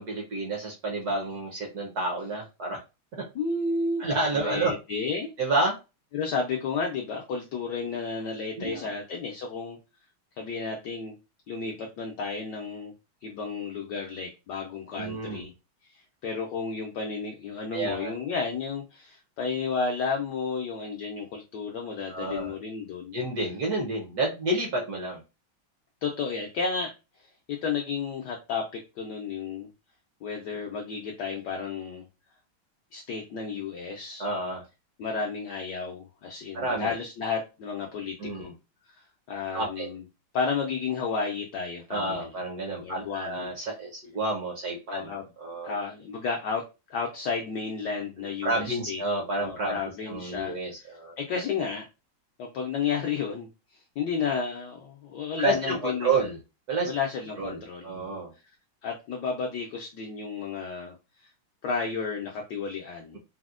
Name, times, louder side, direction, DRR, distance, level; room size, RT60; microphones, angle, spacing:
voice 1, 0.0-2.8 3.1-3.2 4.0-4.7 5.4-5.8 8.6-8.9 14.9-15.4 17.7-18.1 22.1-22.5 23.1-25.2 34.2-34.6 36.5-36.9 38.2-38.5 39.5-39.9 41.9-45.7 48.4-49.8 50.1-51.1 55.4-56.4 56.7-56.9 57.4-58.3, right 2 dB, 65° right, 0 dB, 1.0 m, -30 dB
voice 2, 3.3-4.0 4.3-5.3 6.1-9.8 10.4-11.1 11.5-12.9 13.2-15.5 15.9-23.2 26.0-26.9 27.5-29.7 30.2-32.0 32.9-34.3 35.0-38.5 39.0-40.0 40.3-42.3 42.8-43.5 44.9-45.2 45.6-46.6 46.9-49.0 49.4-51.9 52.4-56.3 56.9-58.2 58.8-60.9 61.2-61.3 61.6-63.2, left 5 dB, 80° left, 1 dB, 0.9 m, -32 dB
4.2 x 2.0 x 2.4 m, 0.28 s
omnidirectional pair, 2.3 m